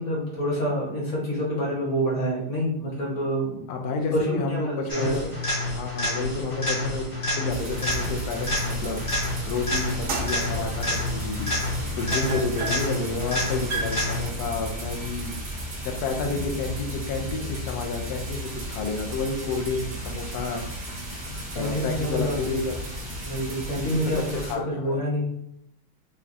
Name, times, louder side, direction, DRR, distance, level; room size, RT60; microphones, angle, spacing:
voice 1, 0.0-3.6 4.1-5.1 11.8-11.9 16.3-16.4 21.3-22.4 23.2-25.3, equal, 45° left, -4 dB, 1.3 m, -27 dB
voice 2, 3.7-5.3 5.6-9.0 9.5-11.5 11.9-15.4 15.8-20.6 21.5-23.1 23.8-25.0, left 3 dB, 75° left, 3 dB, 0.9 m, -30 dB
sound 1, 4.9-14.5 22.5-22.6, left 1 dB, 25° left, 0.8 m, -29 dB
sound 2, 7.5-24.5, equal, 35° right, 0.8 m, -34 dB
sound 3, 10.0-18.3, right 3 dB, 65° right, 0.8 m, -37 dB
4.8 x 2.3 x 2.6 m, 0.76 s
omnidirectional pair, 2.2 m